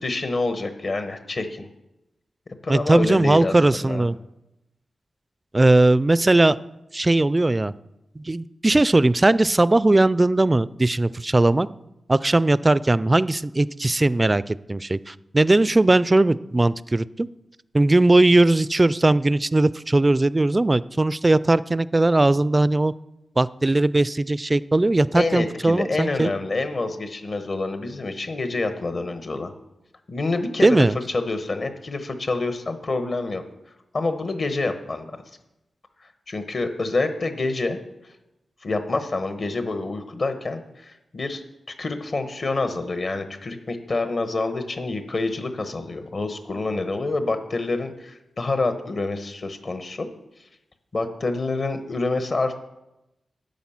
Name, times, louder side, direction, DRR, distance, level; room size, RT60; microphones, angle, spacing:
voice 1, 0.0-1.7 2.6-4.0 25.1-29.5 30.1-33.4 33.9-35.2 36.3-37.8 38.6-41.4 41.8-50.1 50.9-52.5, left 3 dB, 55° left, 8 dB, 1.1 m, -27 dB
voice 2, 2.7-4.2 5.5-6.6 6.9-7.7 8.2-11.7 12.1-17.3 17.7-22.9 23.4-26.3 30.6-31.0, right 2 dB, 25° right, 18 dB, 0.3 m, -19 dB
10.5 x 7.1 x 5.7 m, 0.93 s
cardioid pair, 65°, 0 cm